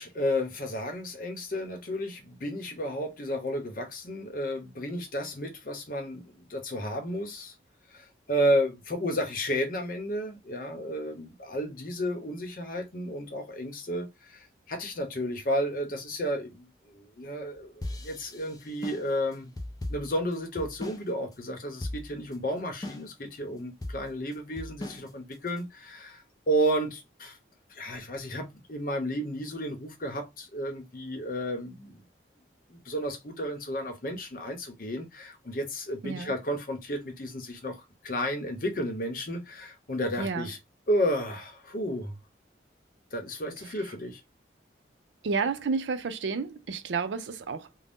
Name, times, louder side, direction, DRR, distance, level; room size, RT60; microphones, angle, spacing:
voice 1, 0.0-7.5 7.9-19.5 19.9-27.4 27.7-32.0 32.7-40.6 40.9-42.1 43.1-44.2, equal, 50° left, 0.8 m, -32 dB
sound 1, 17.8-21.1 21.3-21.4 21.8-22.3 22.8-23.3 23.8-25.6, left 1 dB, 20° left, 0.4 m, -38 dB
voice 2, 36.0-36.3 40.2-40.5 45.2-47.8, right 5 dB, 80° right, 0.5 m, -31 dB
2.6 x 2.0 x 3.4 m
head